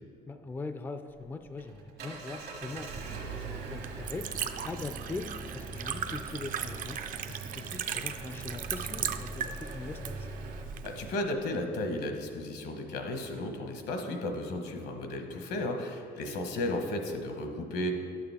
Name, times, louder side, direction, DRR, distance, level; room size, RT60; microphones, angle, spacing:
voice 1, 0.3-2.9 3.2-4.3 4.6-5.3 5.5-7.0 7.3-10.3 15.3-15.6, left 3 dB, 15° left, 9 dB, 0.3 m, -41 dB
Engine, 1.1-10.6, right 3 dB, 70° right, 1.3 m, -43 dB
Liquid, 2.6-11.1, right 8 dB, 55° right, 0.5 m, -38 dB
voice 2, 10.8-17.9, left 1 dB, 75° left, 4 dB, 1.1 m, -34 dB
11.0 x 6.8 x 3.5 m, 2.4 s
cardioid pair, 110°, 17 cm